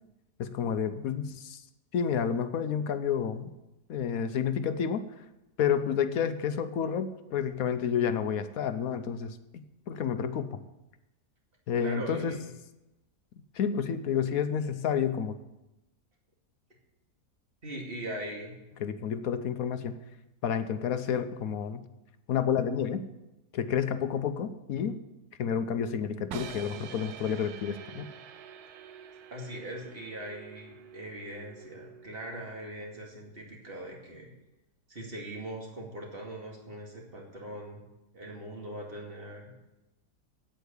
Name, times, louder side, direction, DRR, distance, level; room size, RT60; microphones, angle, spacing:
voice 1, 0.4-1.6 1.9-3.5 3.9-5.1 5.6-10.6 11.7-12.4 13.5-15.4 18.8-20.0 20.4-21.8 22.3-23.1 23.5-25.0 25.4-28.1, left 7 dB, 65° left, 10 dB, 1.1 m, -30 dB
voice 2, 11.8-12.5 17.6-18.5 29.3-34.3 34.9-37.8 38.1-39.5, right 1 dB, 35° right, -1 dB, 2.6 m, -40 dB
sound 1, 26.3-32.3, right 8 dB, 75° right, 1.2 m, -46 dB
9.1 x 8.2 x 8.3 m, 0.97 s
omnidirectional pair, 1.7 m